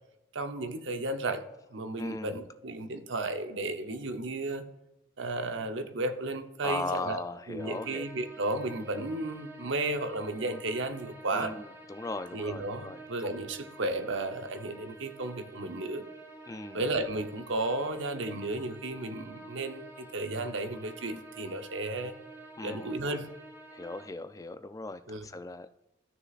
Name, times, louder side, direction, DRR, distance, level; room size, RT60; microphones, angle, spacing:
voice 1, 0.3-1.4 1.7-4.6 5.2-7.2 7.5-11.5 12.3-16.0 16.7-22.1 22.6-23.3 25.1-25.3, right 2 dB, 70° right, 8 dB, 0.8 m, -33 dB
voice 2, 2.0-2.3 6.6-8.0 11.3-13.3 16.5-16.8 22.6-22.9 23.7-25.9, left 3 dB, 15° left, 10 dB, 0.3 m, -38 dB
sound 1, 7.6-24.1, right 2 dB, 15° right, 1.2 m, -49 dB
13.5 x 6.5 x 2.4 m, 0.99 s
head